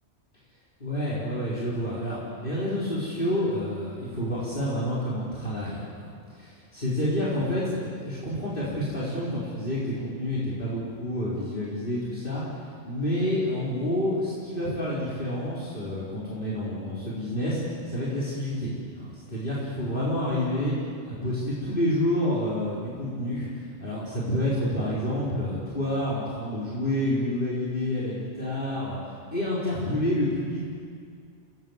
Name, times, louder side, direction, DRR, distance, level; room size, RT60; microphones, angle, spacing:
voice 1, 0.8-12.4 12.8-17.6 17.9-20.7 21.0-23.5 23.8-29.0 29.3-30.6, left 1 dB, 45° left, -8 dB, 4.7 m, -28 dB
30.0 x 18.5 x 8.2 m, 2.2 s
omnidirectional pair, 1.2 m